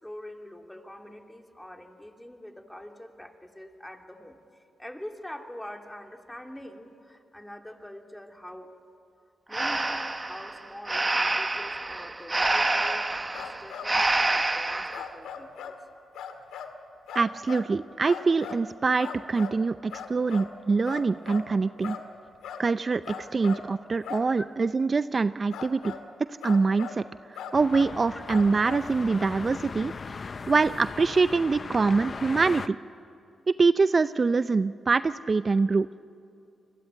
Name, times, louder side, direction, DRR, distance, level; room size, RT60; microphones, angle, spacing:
voice 1, 0.0-4.4 4.8-8.7 9.5-13.0 13.3-15.7 24.4-24.5 28.1-28.2, left 1 dB, 10° left, 3 dB, 2.9 m, -44 dB
Breathing, 9.5-15.1, right 2 dB, 25° right, 1.0 m, -27 dB
sound 1, 12.8-13.0 13.3-13.9 14.9-15.8 16.1-16.7 17.1-17.7 18.0-18.6 19.0-19.6 19.9-20.5 20.9-21.5 21.8-22.1 22.4-22.7 23.0-23.7 24.0-24.3 25.5-26.0 26.4-27.0 27.3-27.9 28.3-28.9, left 7 dB, 90° left, 1.9 m, -39 dB
voice 2, 17.1-22.0 22.6-25.9 26.3-27.0 27.5-30.2 30.5-32.8 33.5-35.9, right 4 dB, 45° right, 13 dB, 0.5 m, -24 dB
sound 2, 27.5-32.7, left 4 dB, 50° left, 0.7 m, -38 dB
28.5 x 21.0 x 9.1 m, 2.6 s
supercardioid pair, 50°, 0 cm